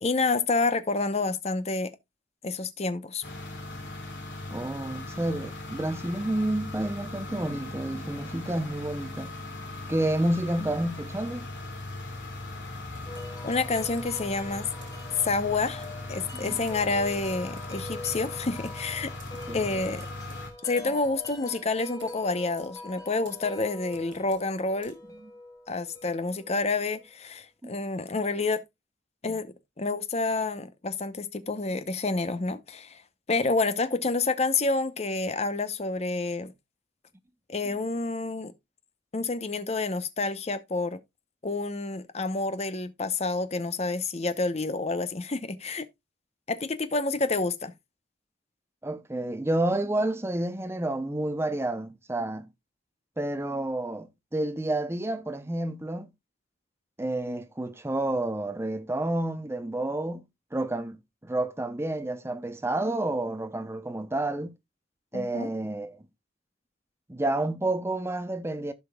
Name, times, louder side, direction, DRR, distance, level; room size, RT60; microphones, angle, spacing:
voice 1, 0.0-1.9 2.4-3.2 13.4-14.7 15.2-19.1 19.5-20.0 20.6-25.0 25.7-28.6 29.2-29.5 29.8-33.0 33.3-36.5 37.5-38.5 39.1-41.0 41.4-45.8 46.5-47.7 65.1-65.5, left 3 dB, 35° left, 0.7 m, -28 dB
sound 1, 3.2-20.5, left 2 dB, 75° left, 2.7 m, -39 dB
voice 2, 4.5-9.3 9.9-11.5 16.4-16.6 19.5-19.6 20.8-20.9 25.2-25.3 27.6-27.7 29.3-29.4 48.8-52.5 53.2-56.1 57.0-60.2 60.5-64.5 65.1-66.0 67.1-68.7, right 1 dB, 15° right, 0.6 m, -30 dB
Computer keyboard, 12.9-25.2, right 4 dB, 80° right, 3.0 m, -55 dB
Wind chime, 13.1-27.0, left 2 dB, 20° left, 2.2 m, -44 dB
15.0 x 5.1 x 2.2 m
head